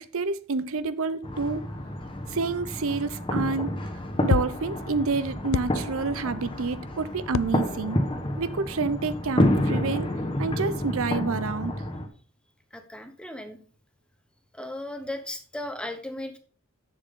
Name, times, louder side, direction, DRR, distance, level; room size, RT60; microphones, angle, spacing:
voice 1, 0.0-1.6 2.3-3.7 4.2-8.0 8.4-10.1 10.4-11.7, right 4 dB, 70° right, 0.7 m, -28 dB
sound 1, 1.2-12.1, left 1 dB, 25° left, 1.3 m, -29 dB
sound 2, 4.3-4.6 5.5-6.1 7.3-8.0 8.4-8.5, left 5 dB, 65° left, 0.4 m, -29 dB
voice 2, 12.7-13.6 14.5-16.4, left 1 dB, 5° left, 1.3 m, -36 dB
10.0 x 7.5 x 3.8 m
head